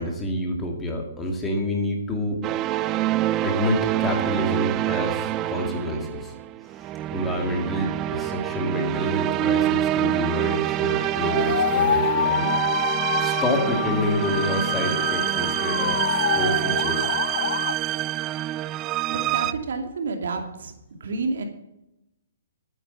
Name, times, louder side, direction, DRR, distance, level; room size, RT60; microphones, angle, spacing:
voice 1, 0.0-2.4 3.4-6.3 7.1-16.0 16.3-17.1, left 1 dB, 10° left, 2 dB, 2.4 m, -28 dB
sound 1, 2.4-19.5, right 14 dB, 25° right, 0.4 m, -26 dB
sound 2, 10.9-17.7, left 8 dB, 60° left, 0.8 m, -27 dB
voice 2, 19.1-20.7 21.0-21.4, right 4 dB, 70° right, 5 dB, 2.5 m, -29 dB
12.5 x 9.2 x 5.8 m, 0.88 s
hypercardioid pair, 150°, 0 cm